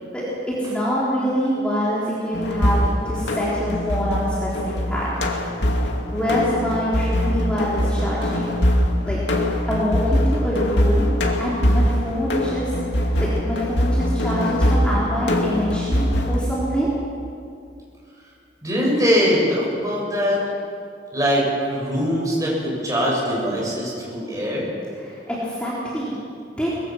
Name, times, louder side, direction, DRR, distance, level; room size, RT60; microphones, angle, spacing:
voice 1, 0.1-5.1 6.1-8.5 9.0-9.2 9.5-11.1 11.4-16.9 25.0-26.1 26.6-26.7, equal, 5° left, -8 dB, 3.7 m, -25 dB
sound 1, 2.3-16.4, equal, 80° left, 2.5 m, -22 dB
voice 2, 18.6-20.4 21.1-24.7, equal, 20° right, -4 dB, 7.1 m, -22 dB
23.5 x 21.5 x 6.2 m, 2.5 s
head